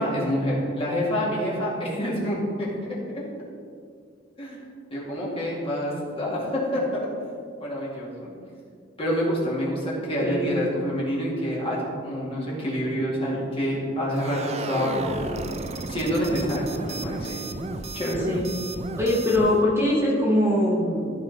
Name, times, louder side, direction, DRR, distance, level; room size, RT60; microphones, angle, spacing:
voice 1, 0.0-3.2 4.4-4.6 4.9-7.1 7.6-8.3 9.0-15.5 15.9-17.4 17.9-18.3, equal, 30° left, -6 dB, 2.0 m, -27 dB
voice 2, 10.2-10.5 18.3-18.5 19.0-21.1, left 1 dB, 15° right, -5 dB, 1.8 m, -22 dB
sound 1, 14.1-19.6, right 2 dB, 35° right, 0.5 m, -33 dB
13.5 x 4.9 x 4.0 m, 2.3 s
head